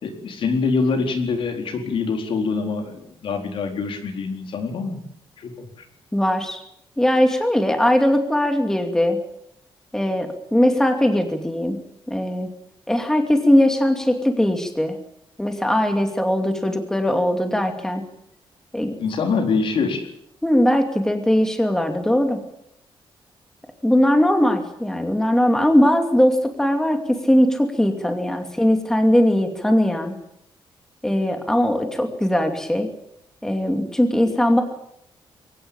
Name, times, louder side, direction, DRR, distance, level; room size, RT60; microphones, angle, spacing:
voice 1, 0.0-5.0 5.4-5.7 19.0-20.1, left 4 dB, 65° left, 4 dB, 4.3 m, -24 dB
voice 2, 6.1-6.6 7.0-9.2 9.9-11.8 12.1-12.5 12.9-15.0 15.4-18.0 18.7-18.9 20.4-22.4 23.8-30.1 31.0-32.9 33.4-34.6, left 1 dB, 5° left, 5 dB, 2.6 m, -20 dB
23.0 x 18.0 x 8.9 m, 0.76 s
wide cardioid pair, 145°, 10 cm